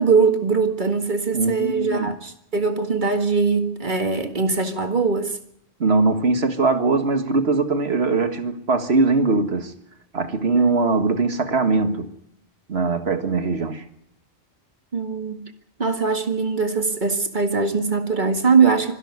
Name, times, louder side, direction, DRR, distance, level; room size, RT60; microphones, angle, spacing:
voice 1, 0.0-5.4 10.5-10.7 14.9-15.4 15.8-19.0, right 4 dB, 45° right, 2.1 m, -21 dB
voice 2, 1.3-2.1 5.8-9.7 10.1-12.1 12.7-13.8, right 3 dB, 70° right, 2.0 m, -21 dB
25.0 x 11.5 x 9.5 m
omnidirectional pair, 1.1 m